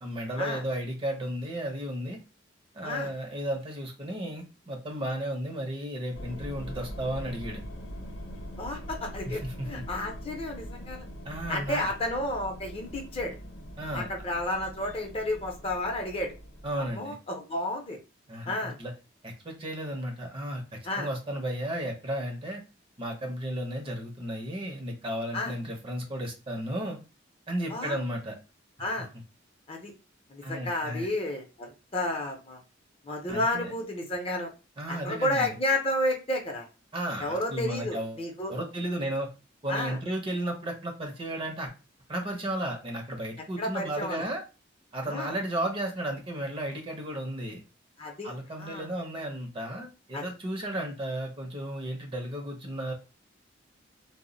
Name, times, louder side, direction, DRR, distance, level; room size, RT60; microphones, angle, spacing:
voice 1, 0.0-2.2 2.7-7.6 9.3-9.7 11.2-11.9 13.8-14.1 16.6-17.2 18.3-18.9 19.2-22.6 23.0-27.0 27.5-28.4 30.4-31.1 33.3-33.7 34.8-35.6 36.9-38.2 38.5-39.3 39.6-41.7 42.1-44.4 44.9-47.6 48.2-52.9, right 1 dB, 30° right, 2 dB, 0.6 m, -34 dB
sound 1, 6.1-16.9, equal, 85° left, 0.7 m, -42 dB
voice 2, 8.6-11.0 11.5-13.4 13.9-16.4 16.8-18.0 18.5-18.8 20.8-21.1 25.3-25.5 27.7-28.0 28.8-29.1 29.7-29.9 30.3-32.6 33.0-34.5 34.9-36.7 37.2-38.5 39.7-40.0 43.6-44.2 45.1-45.3 48.0-48.3 48.6-48.9 50.1-50.3, left 1 dB, 30° left, 2 dB, 0.6 m, -31 dB
2.1 x 2.0 x 3.8 m, 0.31 s
head